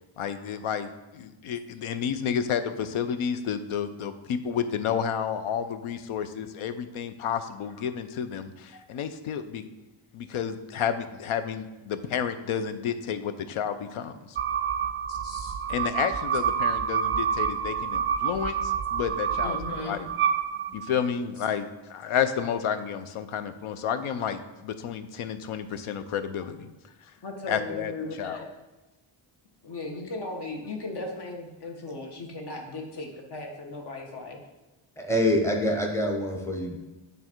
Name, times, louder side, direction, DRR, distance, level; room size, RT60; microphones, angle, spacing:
voice 1, 0.2-9.6 10.1-14.4 15.7-20.1 20.7-26.7 27.5-27.9 28.2-28.4, left 8 dB, 85° left, 11 dB, 0.7 m, -31 dB
sound 1, 14.4-21.1, right 7 dB, 25° right, 0.5 m, -28 dB
voice 2, 15.1-15.5 19.4-20.0 27.2-28.4 29.6-34.4, left 2 dB, 55° left, 2 dB, 1.4 m, -37 dB
voice 3, 35.0-36.8, left 1 dB, 5° left, 2 dB, 0.9 m, -25 dB
8.7 x 3.4 x 4.5 m, 1.1 s
wide cardioid pair, 130°, 48 cm